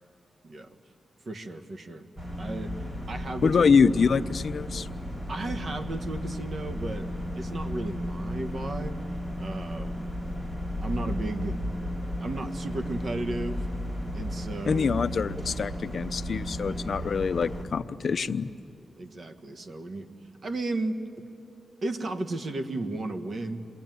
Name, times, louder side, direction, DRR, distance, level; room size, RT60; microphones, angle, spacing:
voice 1, 0.4-0.8 1.2-2.1 2.4-2.7 3.1-3.6 5.3-7.1 7.3-9.0 9.4-10.1 10.8-11.6 12.2-13.6 14.1-14.9 16.7-16.8 19.0-20.1 20.4-21.0 21.8-23.6, right 2 dB, 45° right, 7 dB, 1.5 m, -34 dB
sound 1, 2.2-17.6, equal, 25° right, 3.7 m, -34 dB
voice 2, 3.4-4.9 14.7-18.5, left 5 dB, 50° left, 12 dB, 0.6 m, -25 dB
28.0 x 23.0 x 9.3 m, 2.6 s
wide cardioid pair, 145°, 0 cm